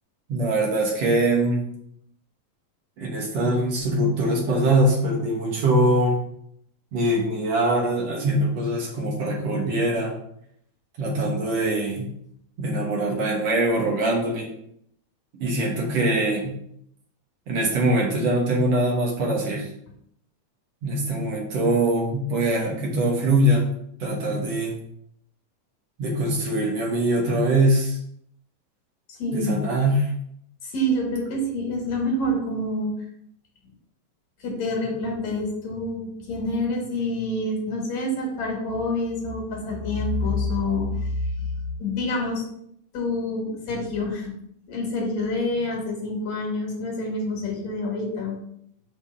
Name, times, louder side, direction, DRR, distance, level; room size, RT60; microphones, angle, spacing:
voice 1, 0.3-1.6 3.0-6.2 6.9-10.1 11.0-12.1 12.6-14.5 15.4-16.5 17.5-19.7 20.8-23.7 24.0-24.8 26.0-28.0 29.3-30.1, right 1 dB, 65° right, -2 dB, 2.1 m, -23 dB
voice 2, 29.1-29.7 30.6-32.9 34.4-41.5 41.8-42.4 42.9-44.3 44.7-48.4, left 1 dB, 65° left, -1 dB, 2.6 m, -27 dB
5.6 x 3.4 x 5.3 m, 0.70 s
omnidirectional pair, 3.4 m